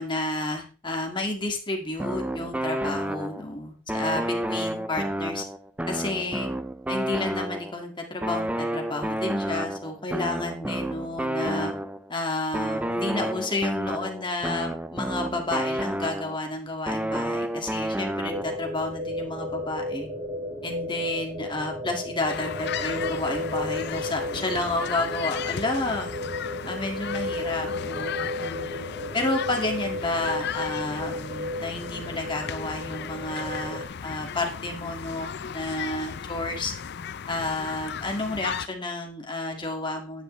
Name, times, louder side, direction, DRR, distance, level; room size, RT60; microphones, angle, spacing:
voice 1, 0.0-5.5 5.9-6.5 6.9-11.7 12.1-20.1 20.6-26.1 26.7-28.7 29.1-36.7 37.3-40.2, left 2 dB, 25° left, 2 dB, 1.9 m, -31 dB
sound 1, 2.0-3.5 3.9-7.8 8.2-12.1 12.5-16.5 16.9-18.7, right 1 dB, 5° right, 0.5 m, -30 dB
sound 2, 18.3-33.8, left 1 dB, 25° right, 2.8 m, -34 dB
sound 3, 22.3-38.7, left 7 dB, 55° left, 0.5 m, -36 dB
11.0 x 9.5 x 3.2 m, 0.34 s
head